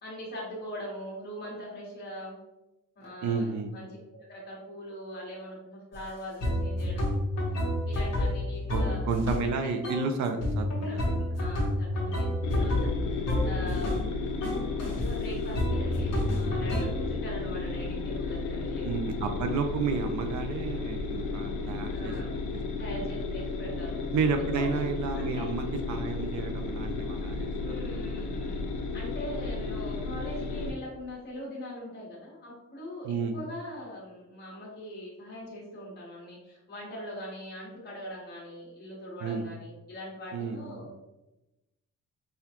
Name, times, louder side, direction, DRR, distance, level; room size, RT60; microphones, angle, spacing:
voice 1, 0.0-2.4 3.0-3.9 4.2-7.2 7.6-9.1 9.4-9.7 10.8-12.3 12.5-14.0 14.7-18.9 21.9-22.4 22.8-24.0 24.4-25.5 27.5-41.0, equal, 35° left, -5 dB, 1.4 m, -42 dB
voice 2, 3.2-3.7 8.7-8.8 9.1-10.7 11.0-11.2 13.6-13.8 18.8-23.0 24.1-27.9 33.0-33.4 39.2-39.5 40.3-41.0, right 5 dB, 65° right, 6 dB, 0.5 m, -31 dB
sound 1, 5.9-6.0 6.4-9.5 9.8-10.1 10.4-14.1 14.4-15.1 15.6-16.8, left 1 dB, 55° left, 1.2 m, -29 dB
sound 2, 12.4-30.7, left 3 dB, 70° left, 0.6 m, -33 dB
5.4 x 2.3 x 2.9 m, 0.99 s
cardioid pair, 175°, 31 cm